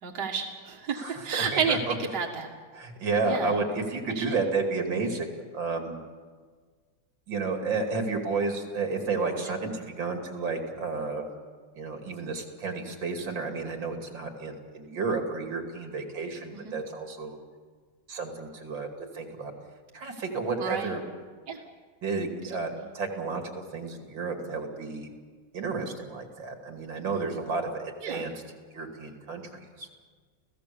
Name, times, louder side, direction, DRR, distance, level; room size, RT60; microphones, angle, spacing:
voice 1, 0.0-2.5 3.2-3.5 4.2-4.4 16.6-16.7 20.6-20.9 21.5-21.6 28.0-28.2, right 6 dB, 65° right, 0 dB, 2.4 m, -30 dB
voice 2, 1.0-1.9 2.7-5.3 5.5-6.0 7.3-11.2 11.8-17.4 18.1-18.9 19.1-19.5 19.9-21.0 22.0-25.1 25.5-28.4 28.7-29.9, right 4 dB, 90° right, 3 dB, 3.4 m, -31 dB
29.5 x 16.5 x 7.0 m, 1.5 s
omnidirectional pair, 2.0 m